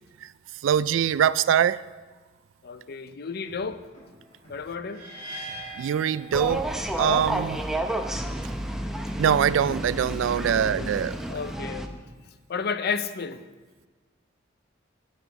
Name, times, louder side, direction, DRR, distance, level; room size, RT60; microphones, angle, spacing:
voice 1, 0.6-1.8 5.8-6.7 7.0-7.6 9.2-11.2, right 8 dB, 75° right, 0.3 m, -23 dB
voice 2, 2.6-3.9 4.5-5.0 10.5-11.0 11.3-11.9 12.5-13.5, left 5 dB, 55° left, 0.5 m, -32 dB
sound 1, 3.4-11.4, equal, 40° left, 3.7 m, -53 dB
sound 2, 4.9-7.0, right 1 dB, 35° right, 2.2 m, -40 dB
sound 3, 6.3-11.9, right 1 dB, ahead, 0.6 m, -30 dB
9.8 x 9.3 x 4.7 m
head